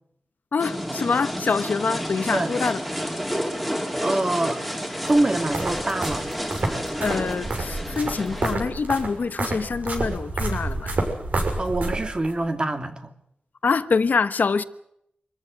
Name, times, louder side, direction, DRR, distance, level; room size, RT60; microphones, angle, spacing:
voice 1, 0.5-2.8 7.0-11.0 13.6-14.6, left 5 dB, 65° left, 1.1 m, -25 dB
sound 1, 0.6-8.5, equal, ahead, 3.3 m, -30 dB
voice 2, 4.0-4.6 5.1-6.2 11.6-13.1, right 2 dB, 30° right, 2.5 m, -24 dB
sound 2, 5.0-12.3, right 2 dB, 60° right, 6.4 m, -29 dB
25.5 x 14.5 x 9.5 m
wide cardioid pair, 125°, 3 cm